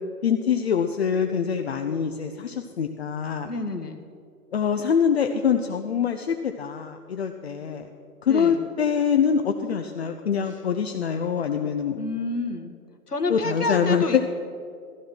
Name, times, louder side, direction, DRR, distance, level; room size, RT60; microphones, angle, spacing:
voice 1, 0.2-3.5 4.5-7.9 8.2-12.0 13.3-14.3, left 7 dB, 40° left, 5 dB, 0.8 m, -24 dB
voice 2, 3.4-4.0 8.2-8.6 12.0-12.8 13.1-14.3, left 3 dB, 75° left, 7 dB, 1.9 m, -28 dB
16.0 x 15.0 x 6.1 m, 2.4 s
figure-of-eight pair, 125°, 47 cm